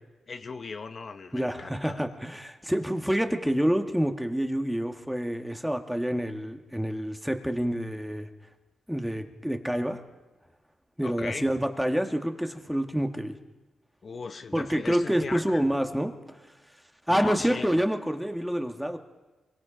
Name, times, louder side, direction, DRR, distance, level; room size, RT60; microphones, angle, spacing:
voice 1, 0.3-2.0 11.0-11.5 14.0-15.6 17.1-17.9, left 4 dB, 45° left, 8 dB, 0.8 m, -38 dB
voice 2, 1.3-8.3 8.9-10.0 11.0-13.4 14.5-16.4 17.1-19.0, equal, 5° right, 6 dB, 1.6 m, -28 dB
25.0 x 23.0 x 5.1 m, 1.2 s
cardioid pair, 95°, 0 cm